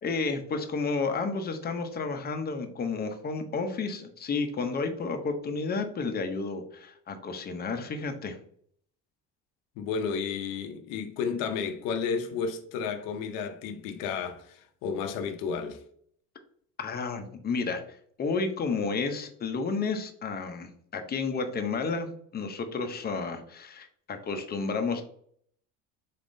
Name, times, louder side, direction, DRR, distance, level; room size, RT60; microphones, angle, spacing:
voice 1, 0.0-8.4 16.8-25.0, left 4 dB, 30° left, 0.6 m, -31 dB
voice 2, 9.8-15.8, left 6 dB, 85° left, 0.6 m, -32 dB
4.2 x 3.5 x 2.6 m
cardioid pair, 125°, 33 cm